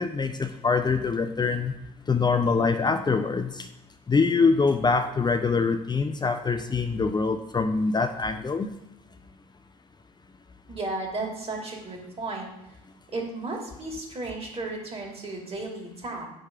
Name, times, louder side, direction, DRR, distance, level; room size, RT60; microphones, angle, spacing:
voice 1, 0.0-1.8 2.1-3.7 4.1-8.7, left 4 dB, 20° left, 7 dB, 0.6 m, -24 dB
voice 2, 10.7-12.5 13.1-16.3, right 2 dB, 30° right, 0 dB, 2.5 m, -34 dB
9.1 x 3.3 x 5.8 m, 0.91 s
figure-of-eight pair, 50°, 19 cm